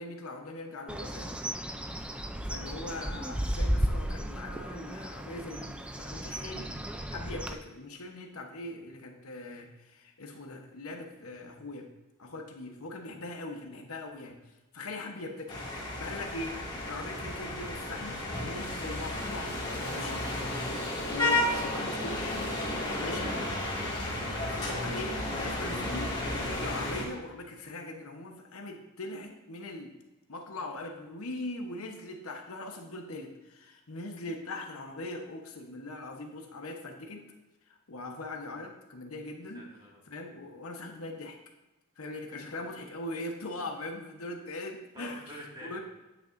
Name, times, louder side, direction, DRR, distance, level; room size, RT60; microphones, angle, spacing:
voice 1, 0.0-1.4 2.5-6.8 7.1-11.9 12.2-14.4 14.7-15.6 16.0-16.5 16.9-19.5 19.9-20.2 21.1-22.4 23.0-23.8 24.1-26.1 26.6-29.9 30.3-37.2 37.9-39.6 40.1-41.4 42.0-45.2 45.6-45.8, left 2 dB, 70° left, 3 dB, 1.0 m, -41 dB
Bird, 0.9-7.5, equal, 5° right, 0.4 m, -34 dB
sound 1, 15.5-27.0, left 1 dB, 20° left, 2.0 m, -33 dB
voice 2, 39.5-40.0 42.3-42.6 44.9-45.8, equal, 20° right, -3 dB, 2.1 m, -46 dB
9.2 x 8.7 x 2.6 m, 1.0 s
head